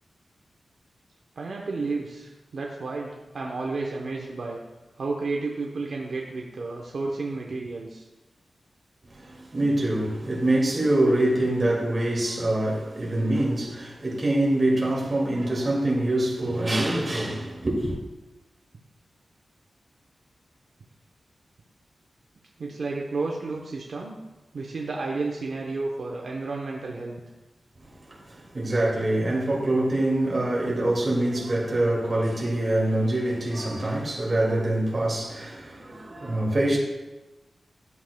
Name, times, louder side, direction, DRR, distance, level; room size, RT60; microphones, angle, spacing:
voice 1, 1.4-4.6 5.0-8.1 22.6-24.1 24.5-27.2, right 3 dB, 60° right, 0.8 m, -32 dB
voice 2, 9.1-18.0 28.0-36.8, right 1 dB, 30° right, 2.1 m, -25 dB
12.0 x 7.5 x 2.2 m
wide cardioid pair, 145°, 0 cm